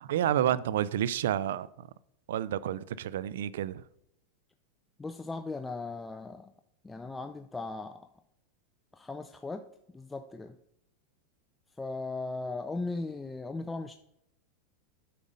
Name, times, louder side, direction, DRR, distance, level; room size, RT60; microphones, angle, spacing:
voice 1, 0.0-1.9 2.3-3.8, right 11 dB, 80° right, 0.4 m, -30 dB
voice 2, 5.0-6.5 6.8-8.1 8.9-10.6 11.8-14.0, left 3 dB, 10° left, 0.4 m, -38 dB
8.6 x 5.4 x 5.1 m
supercardioid pair, 130°, 0 cm